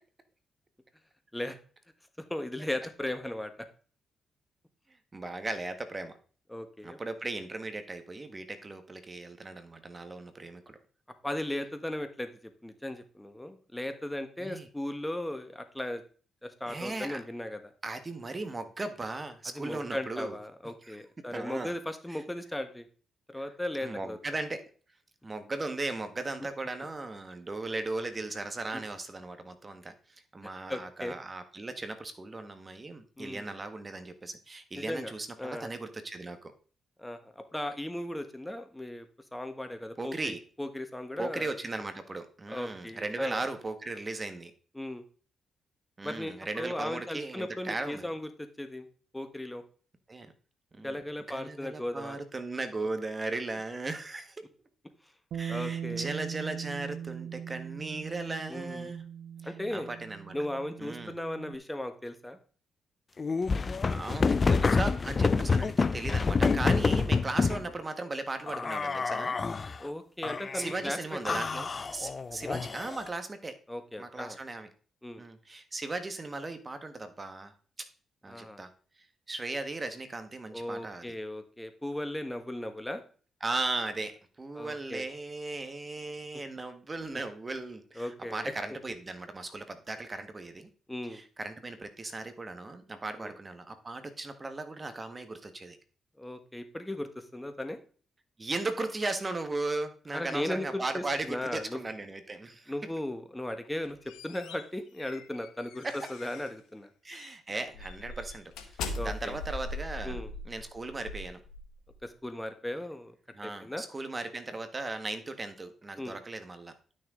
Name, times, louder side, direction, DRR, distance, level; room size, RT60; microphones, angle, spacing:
voice 1, 2.2-3.5 6.5-7.0 11.2-12.3 12.6-16.0 16.4-17.7 19.5-22.9 23.3-24.2 30.4-31.2 33.2-33.4 34.7-35.1 35.4-35.7 37.0-39.1 39.3-41.5 42.5-43.4 44.7-45.0 46.0-48.8 49.1-49.6 50.8-52.2 55.5-56.1 58.5-58.9 59.4-59.9 60.3-62.4 69.8-71.4 73.7-74.4 75.0-75.2 78.3-78.6 80.5-83.0 84.5-85.1 88.0-88.5 90.9-91.2 93.2-93.3 96.2-97.8 100.1-101.8 102.7-104.0 104.2-106.9 108.9-109.4 110.0-110.3 112.0-113.1 113.4-113.8 116.0-116.2, left 1 dB, 10° left, 8 dB, 1.4 m, -37 dB
voice 2, 5.1-6.1 6.8-10.8 14.4-14.7 16.7-17.2 17.8-20.4 20.8-21.8 22.1-22.2 23.3-23.4 23.8-24.6 25.2-29.9 30.3-36.5 40.0-40.4 41.2-44.5 46.0-48.1 50.1-50.3 50.7-50.9 51.3-54.5 55.3-59.1 59.4-60.4 60.8-61.1 63.9-69.4 70.5-73.5 74.0-74.7 75.2-77.5 77.8-77.9 78.2-78.7 79.3-81.0 83.4-84.1 84.4-90.7 91.0-95.8 98.4-102.7 105.8-106.1 107.0-108.5 109.0-111.4 113.3-116.7, right 2 dB, 35° right, 9 dB, 1.6 m, -37 dB
Bass guitar, 55.3-61.6, right 8 dB, 80° right, 0.4 m, -40 dB
sound 1, 63.2-67.6 68.5-69.8 70.2-70.8 71.3-73.1, left 4 dB, 45° left, 0.5 m, -28 dB
sound 2, 103.6-106.6 107.1-107.3 107.7-112.0, left 2 dB, 85° left, 1.4 m, -41 dB
11.5 x 6.5 x 3.8 m, 0.41 s
supercardioid pair, 55°, 0 cm